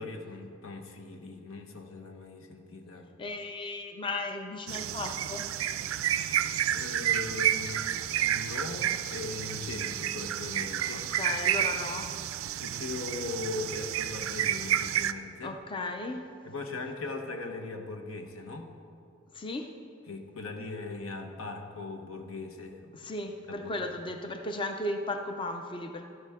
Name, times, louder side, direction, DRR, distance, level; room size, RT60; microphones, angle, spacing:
voice 1, 0.0-3.1 6.7-11.1 11.7-11.8 12.6-15.5 16.5-18.7 20.1-23.1 23.5-23.7, left 3 dB, 85° left, 4 dB, 1.1 m, -39 dB
voice 2, 3.2-5.5 10.8-12.1 15.4-16.2 19.3-19.8 22.9-26.0, left 2 dB, 25° left, 5 dB, 0.5 m, -35 dB
sound 1, 4.7-15.1, right 11 dB, 80° right, 0.4 m, -30 dB
12.5 x 11.0 x 3.6 m, 2.5 s
head